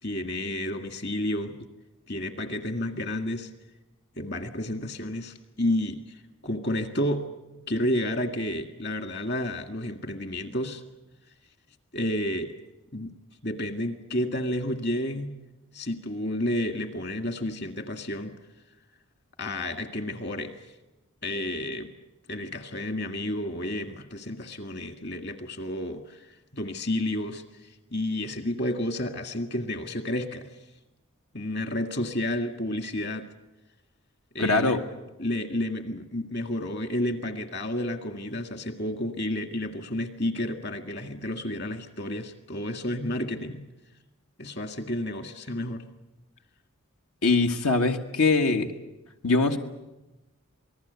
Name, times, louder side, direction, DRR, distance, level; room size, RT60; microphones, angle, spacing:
voice 1, 0.0-1.6 2.1-3.5 4.2-7.3 7.7-10.8 11.9-12.5 12.9-13.1 13.4-15.4 15.7-18.3 19.4-20.5 21.2-21.9 22.3-30.6 31.3-33.3 34.3-34.8 35.2-43.7 44.4-45.9, left 1 dB, 50° left, 7 dB, 1.9 m, -31 dB
voice 2, 34.4-34.8 47.2-48.7 49.2-49.6, left 3 dB, 90° left, 4 dB, 1.4 m, -22 dB
27.5 x 19.5 x 8.1 m, 1.0 s
head